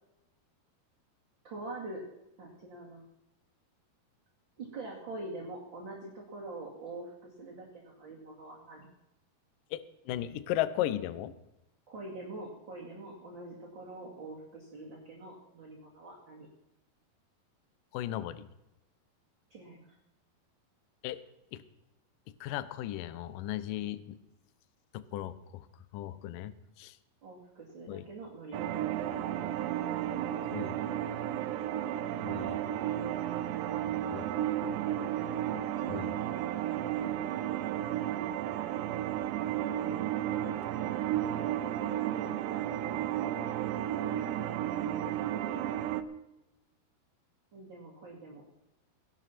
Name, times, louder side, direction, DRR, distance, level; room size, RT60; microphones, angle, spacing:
voice 1, 1.4-2.0 2.4-3.0 4.6-8.9 11.9-16.5 19.5-20.0 27.2-28.8 40.2-41.5 47.5-48.4, right 2 dB, 35° right, -3 dB, 2.3 m, -45 dB
voice 2, 9.7-11.3 17.9-18.4 21.0-21.2 21.5-21.6 22.4-24.0 24.9-25.6 25.9-26.5 26.8-26.9 27.9-28.0 30.5-30.8 32.2-32.6 34.1-34.3 35.9-36.1, left 13 dB, 80° left, 15 dB, 2.0 m, -36 dB
sound 1, 28.5-46.0, right 11 dB, 85° right, 3.0 m, -33 dB
17.0 x 11.0 x 5.9 m, 0.92 s
omnidirectional pair, 4.9 m